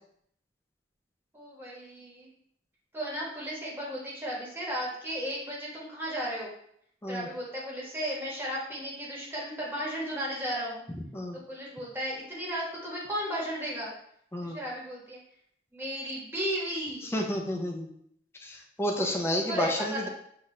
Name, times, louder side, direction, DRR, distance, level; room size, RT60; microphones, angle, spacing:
voice 1, 1.3-2.3 2.9-6.5 7.1-10.8 11.3-13.9 14.4-15.2 15.7-17.0 19.0-20.1, equal, 10° right, -4 dB, 1.2 m, -35 dB
voice 2, 17.0-17.9 18.4-20.1, left 1 dB, 15° left, 2 dB, 0.5 m, -30 dB
5.8 x 2.4 x 3.2 m, 0.70 s
head